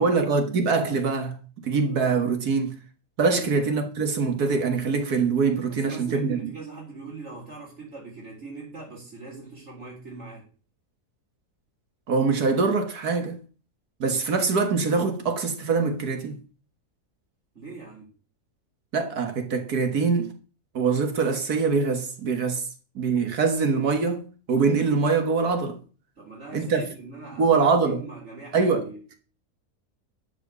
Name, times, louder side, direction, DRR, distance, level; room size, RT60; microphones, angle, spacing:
voice 1, 0.0-1.4 1.6-2.8 3.2-6.4 12.1-13.4 14.0-16.4 18.9-20.3 20.7-22.6 23.0-25.8 26.5-26.8 27.4-28.0 28.5-28.9, right 4 dB, 65° right, 1.9 m, -23 dB
voice 2, 5.7-10.5 17.5-18.1 26.2-29.2, right 3 dB, 45° right, 3.8 m, -41 dB
12.0 x 6.1 x 6.6 m
omnidirectional pair, 1.8 m